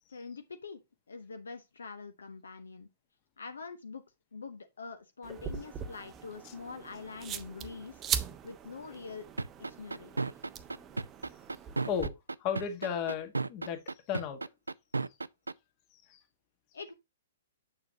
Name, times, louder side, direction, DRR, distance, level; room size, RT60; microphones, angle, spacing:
voice 1, 0.1-0.8 1.1-2.9 3.4-4.0 4.3-8.0 8.4-9.3 9.8-10.3 16.7-16.9, left 4 dB, 70° left, 0.7 m, -44 dB
sound 1, 5.2-12.1, right 8 dB, 20° right, 0.6 m, -40 dB
sound 2, 5.3-10.7 11.8-11.9 12.7-12.9, left 4 dB, 10° left, 1.4 m, -59 dB
sound 3, 9.4-15.5, right 3 dB, 80° right, 0.3 m, -33 dB
voice 2, 12.4-13.8 14.1-14.4 16.1-16.2, left 7 dB, 35° left, 1.4 m, -34 dB
7.3 x 6.6 x 2.8 m
figure-of-eight pair, 115°, 0 cm